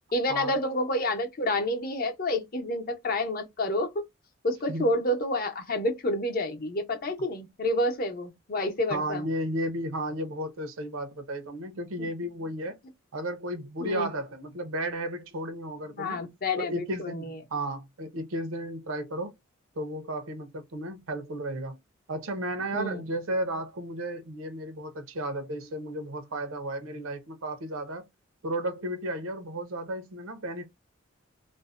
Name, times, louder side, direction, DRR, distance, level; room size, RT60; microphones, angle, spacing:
voice 1, 0.1-4.0 4.4-9.2 12.0-12.1 13.8-14.1 15.9-17.4 22.7-23.0, left 1 dB, 45° left, 0.6 m, -29 dB
voice 2, 8.9-12.8 13.1-16.2 16.6-19.3 19.8-21.8 22.1-28.1 28.4-30.7, right 1 dB, 90° right, 0.7 m, -33 dB
2.5 x 2.1 x 2.4 m
head